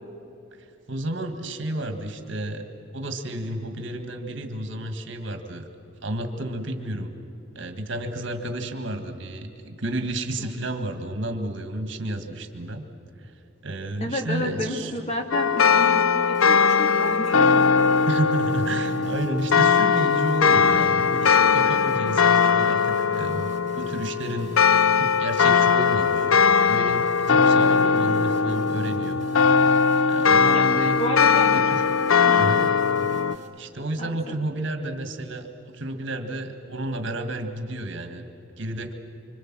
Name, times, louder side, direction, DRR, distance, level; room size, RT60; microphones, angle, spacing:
voice 1, 0.6-2.7 2.9-5.7 6.0-7.1 7.6-12.8 13.2-13.3 13.6-14.9 18.1-26.3 26.7-29.2 29.7-31.1 31.5-31.8 32.4-32.7 33.6-35.5 35.7-38.2 38.6-38.9, right 1 dB, 65° right, 7 dB, 1.8 m, -31 dB
voice 2, 14.0-17.5 30.5-30.7 31.0-31.5 32.2-32.5 34.0-34.4, left 1 dB, 30° left, 3 dB, 2.3 m, -31 dB
sound 1, 15.3-33.4, left 5 dB, 85° left, 0.6 m, -20 dB
sound 2, 16.3-33.5, right 2 dB, 40° right, 4.2 m, -48 dB
26.0 x 25.5 x 7.6 m, 2.9 s
head